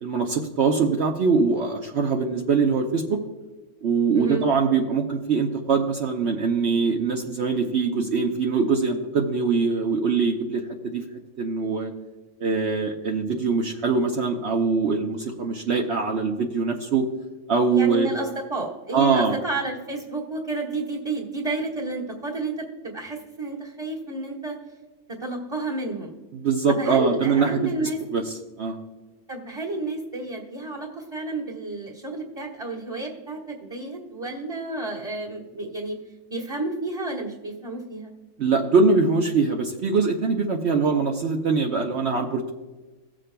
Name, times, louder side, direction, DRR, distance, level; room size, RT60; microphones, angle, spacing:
voice 1, 0.0-3.2 3.8-11.0 11.4-11.9 12.4-17.1 17.5-18.1 18.9-19.4 26.3-28.8 38.4-42.5, right 4 dB, 60° right, 2 dB, 1.0 m, -23 dB
voice 2, 4.1-4.5 17.7-24.6 25.2-26.1 26.7-28.2 29.3-36.0 36.3-38.1, right 2 dB, 20° right, -3 dB, 1.4 m, -31 dB
17.0 x 7.6 x 2.2 m, 1.2 s
omnidirectional pair, 1.4 m